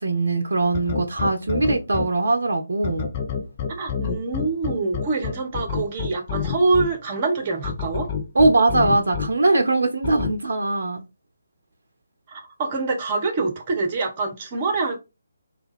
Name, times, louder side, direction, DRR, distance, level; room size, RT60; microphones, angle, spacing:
voice 1, 0.0-3.1 8.3-11.0, right 2 dB, 55° right, 0.6 m, -21 dB
sound 1, 0.7-2.1 2.8-6.9 7.6-9.3 10.0-10.3, left 6 dB, 25° left, 0.6 m, -27 dB
voice 2, 3.7-8.1 12.3-15.0, right 3 dB, 30° right, 1.0 m, -25 dB
3.3 x 2.3 x 3.5 m
figure-of-eight pair, 145°, 0 cm